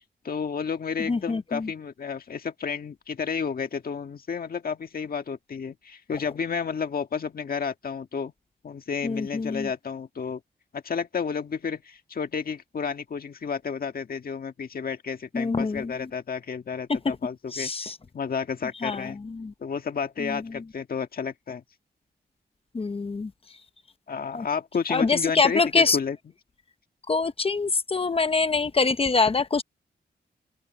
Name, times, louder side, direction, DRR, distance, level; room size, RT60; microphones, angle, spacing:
voice 1, 0.2-8.3 8.6-10.4 10.7-17.7 18.1-19.2 19.6-21.6 24.1-26.2, left 6 dB, 60° left, 1.7 m, -31 dB
voice 2, 1.1-1.7 9.0-9.7 15.3-16.1 17.0-17.2 17.5-17.9 18.8-19.5 20.2-20.6 22.7-23.3 24.3-24.5 24.9-26.0 27.1-29.6, left 4 dB, 35° left, 0.9 m, -25 dB
open air
wide cardioid pair, 110°, 18 cm